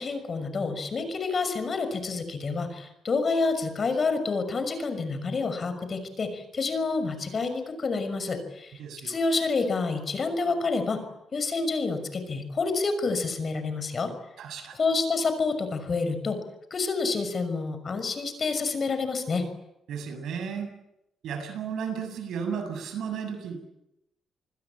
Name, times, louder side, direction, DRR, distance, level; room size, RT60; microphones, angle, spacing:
voice 1, 0.0-8.8 9.0-11.0 11.3-14.1 14.7-16.4 16.7-19.4, left 4 dB, 40° left, 10 dB, 6.1 m, -28 dB
voice 2, 8.8-9.2 14.4-14.8 19.9-20.7 21.2-23.6, right 6 dB, 75° right, 6 dB, 7.4 m, -34 dB
28.0 x 20.5 x 8.9 m, 0.86 s
cardioid pair, 90°, 0 cm